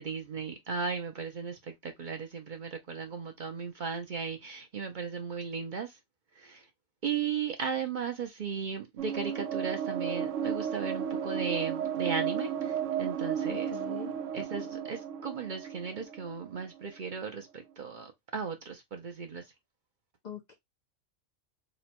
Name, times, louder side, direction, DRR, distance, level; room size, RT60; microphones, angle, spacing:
voice 1, 0.0-6.0 6.4-6.7 7.0-13.8 14.3-19.5, right 6 dB, 50° right, 0.6 m, -36 dB
sound 1, 9.0-17.1, right 8 dB, 85° right, 1.0 m, -34 dB
voice 2, 13.5-14.1 20.2-20.6, left 9 dB, 60° left, 0.5 m, -43 dB
3.0 x 2.1 x 4.0 m
omnidirectional pair, 1.3 m